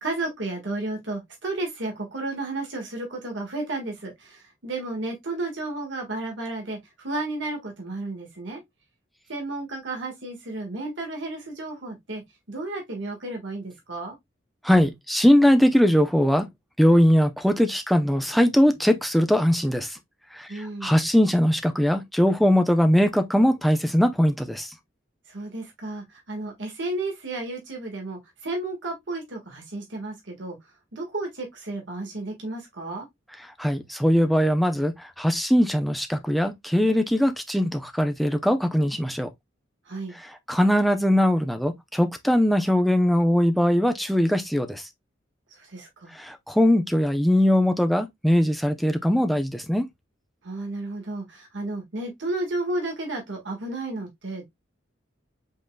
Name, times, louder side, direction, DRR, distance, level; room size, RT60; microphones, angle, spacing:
voice 1, 0.0-8.6 9.3-12.2 12.5-14.2 20.5-20.9 25.3-30.6 30.9-33.1 39.9-40.2 45.6-46.1 50.4-54.5, right 2 dB, 65° right, 1.6 m, -32 dB
voice 2, 14.6-16.5 16.8-20.0 20.3-24.7 33.6-39.3 40.1-44.9 46.1-49.8, equal, ahead, 0.5 m, -21 dB
5.3 x 3.7 x 2.2 m
head